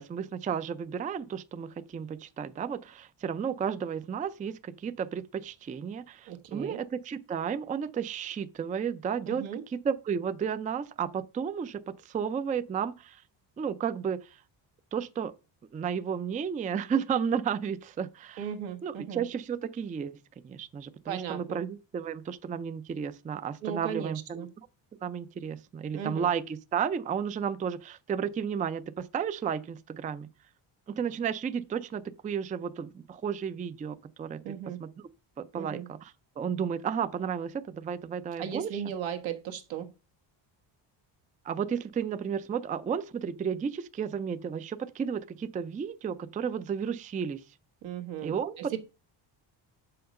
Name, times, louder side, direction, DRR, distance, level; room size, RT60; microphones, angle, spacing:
voice 1, 0.0-13.2 13.6-14.4 14.9-15.3 15.7-18.5 18.8-20.2 20.4-24.5 25.0-30.3 30.9-34.4 34.8-34.9 35.4-38.8 41.4-47.4 48.2-48.8, right 7 dB, 20° right, 0.3 m, -33 dB
voice 2, 6.3-6.8 9.3-9.6 18.4-19.2 21.1-21.6 23.6-24.5 25.9-26.3 34.4-34.8 35.5-35.9 38.4-39.9 47.8-48.8, right 9 dB, 85° right, 1.5 m, -36 dB
7.6 x 5.8 x 5.3 m
cardioid pair, 125°, 45 cm